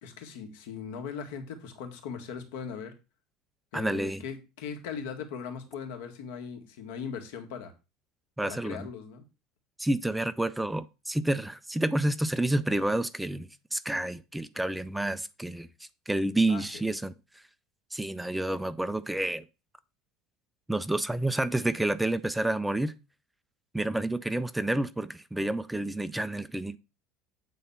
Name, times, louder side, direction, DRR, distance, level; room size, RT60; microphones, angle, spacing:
voice 1, 0.0-2.9 3.7-7.7 8.4-9.3 16.5-16.6, left 6 dB, 85° left, 1.8 m, -39 dB
voice 2, 3.7-4.2 8.4-8.9 9.8-15.7 16.1-17.4 17.9-19.5 20.7-22.9 23.7-26.8, right 1 dB, 5° right, 0.3 m, -29 dB
8.4 x 4.0 x 5.6 m
cardioid pair, 165°, 0 cm